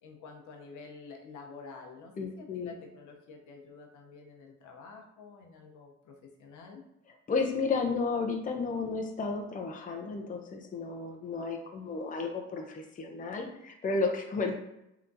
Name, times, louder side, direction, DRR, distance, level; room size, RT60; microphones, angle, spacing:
voice 1, 0.0-6.8, left 4 dB, 85° left, 2 dB, 0.7 m, -49 dB
voice 2, 2.2-2.7 7.3-14.6, left 4 dB, 25° left, 2 dB, 0.5 m, -32 dB
3.4 x 2.8 x 2.6 m, 0.82 s
cardioid pair, 90°, 30 cm